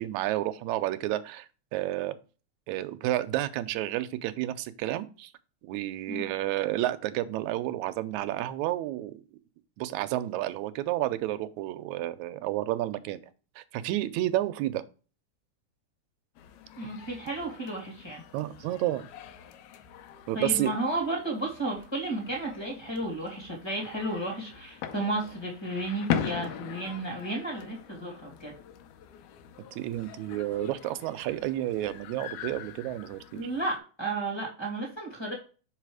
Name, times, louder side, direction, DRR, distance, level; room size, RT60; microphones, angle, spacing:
voice 1, 0.0-2.2 2.7-5.3 5.6-9.2 9.8-13.2 13.6-14.8 18.3-19.1 20.3-20.7 29.6-33.5, right 14 dB, 80° right, 11 dB, 1.9 m, -31 dB
sound 1, 16.4-33.8, left 9 dB, 80° left, 2.0 m, -41 dB
voice 2, 16.8-18.2 20.3-28.6 33.3-35.3, right 2 dB, 10° left, 0 dB, 2.0 m, -33 dB
6.2 x 4.1 x 4.7 m, 0.36 s
omnidirectional pair, 3.5 m